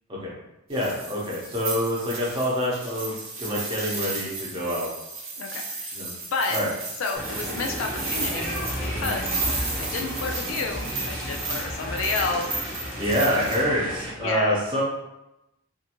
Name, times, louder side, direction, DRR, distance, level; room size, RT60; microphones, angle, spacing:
voice 1, 0.7-4.9 5.9-6.1 6.5-6.7 9.0-9.2 13.0-14.8, equal, 25° right, -5 dB, 0.7 m, -26 dB
sound 1, 0.7-13.6, right 3 dB, 75° right, 0.8 m, -34 dB
voice 2, 5.4-5.9 6.3-6.6 7.0-8.5 8.9-9.3 9.8-12.6 14.2-14.5, left 4 dB, 70° left, 3 dB, 0.4 m, -30 dB
sound 2, 7.2-14.1, equal, 10° left, 0.9 m, -33 dB
2.5 x 2.5 x 2.9 m, 0.92 s
head